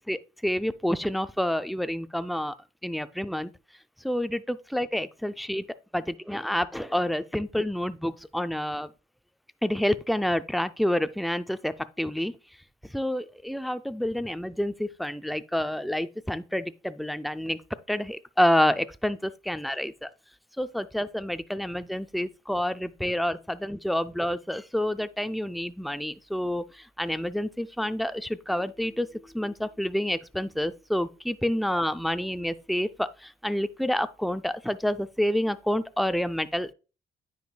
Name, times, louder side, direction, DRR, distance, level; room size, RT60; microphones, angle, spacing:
voice 1, 0.1-2.5 2.8-3.5 4.0-5.6 5.9-8.9 9.6-12.3 12.9-17.6 17.9-20.1 20.6-36.7, left 1 dB, ahead, 0.4 m, -28 dB
9.2 x 5.0 x 2.2 m
cardioid pair, 90°, 20 cm